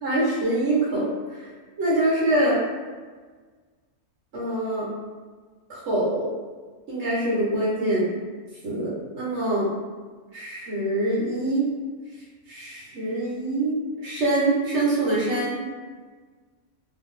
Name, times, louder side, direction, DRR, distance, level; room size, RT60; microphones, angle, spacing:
voice 1, 0.0-1.5 1.8-2.6 4.3-4.9 5.7-6.3 6.9-8.1 8.6-9.7 10.3-11.7 12.5-15.6, right 1 dB, 60° right, -6 dB, 1.0 m, -24 dB
2.5 x 2.1 x 3.6 m, 1.4 s
omnidirectional pair, 1.5 m